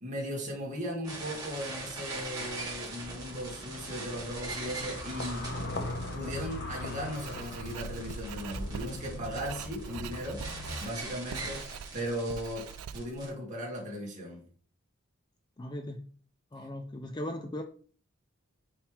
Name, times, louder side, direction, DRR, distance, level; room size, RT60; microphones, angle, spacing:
voice 1, 0.0-5.6 6.1-10.4 10.8-11.7 11.9-14.4, equal, 35° right, 2.1 m, -37 dB
sound 1, 1.0-13.3, right 2 dB, 20° right, 2.4 m, -42 dB
sound 2, 3.0-10.7, left 2 dB, 50° left, 0.9 m, -40 dB
Writing, 7.1-13.3, right 7 dB, 85° right, 0.3 m, -44 dB
voice 2, 15.6-16.1 16.5-17.6, left 1 dB, 20° left, 0.4 m, -38 dB
6.1 x 4.9 x 3.2 m
head